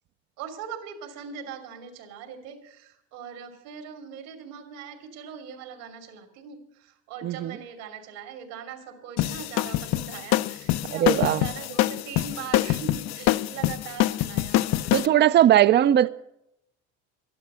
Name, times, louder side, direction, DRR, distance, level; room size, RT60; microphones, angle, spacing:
voice 1, 0.4-15.4 15.8-16.1, right 7 dB, 75° right, 3.1 m, -41 dB
voice 2, 7.2-7.6 10.9-11.4 14.9-16.1, right 11 dB, 30° right, 0.4 m, -19 dB
sound 1, 9.2-15.1, left 15 dB, 50° left, 0.5 m, -25 dB
12.5 x 12.0 x 6.9 m
cardioid pair, 135°, 33 cm